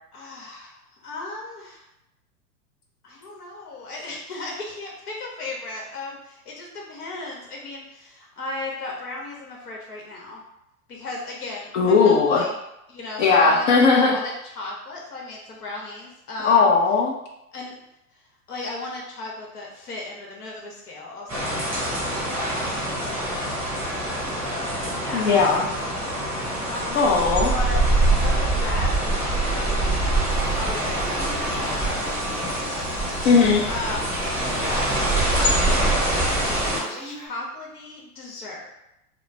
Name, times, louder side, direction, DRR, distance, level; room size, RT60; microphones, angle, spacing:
voice 1, 0.1-1.8 3.0-10.4 10.9-12.6 12.9-16.8 17.5-17.7 18.5-25.8 26.7-27.1 27.5-27.8 28.2-32.8 33.1-33.3 33.7-35.8 36.1-38.7, left 2 dB, 80° left, -2 dB, 1.0 m, -36 dB
voice 2, 11.7-12.4 13.2-14.1 16.4-17.1 25.1-25.6 26.9-27.5 33.2-33.7, left 4 dB, 50° left, -1 dB, 0.6 m, -17 dB
sound 1, 21.3-36.8, right 1 dB, 5° right, 1.1 m, -24 dB
Telephone, 30.8-33.1 33.8-35.3 35.7-35.8 36.6-37.3, right 1 dB, 20° right, 0.7 m, -40 dB
2.4 x 2.0 x 3.2 m, 0.85 s
hypercardioid pair, 115°, 45 cm